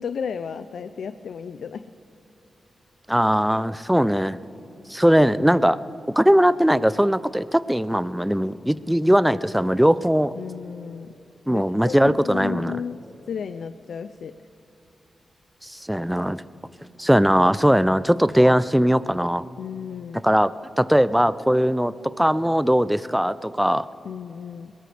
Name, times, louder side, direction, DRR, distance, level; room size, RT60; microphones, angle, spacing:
voice 1, 0.0-1.9 10.4-11.1 11.5-13.0 13.3-14.3 19.6-20.2 24.0-24.7, left 7 dB, 80° left, 12 dB, 0.4 m, -33 dB
voice 2, 3.1-4.4 4.9-5.8 6.2-10.3 11.5-12.8 15.6-16.4 17.0-19.5 20.2-20.5 20.8-23.9, equal, 5° right, 15 dB, 0.4 m, -20 dB
21.5 x 19.0 x 3.4 m, 2.8 s
cardioid pair, 70°, 0 cm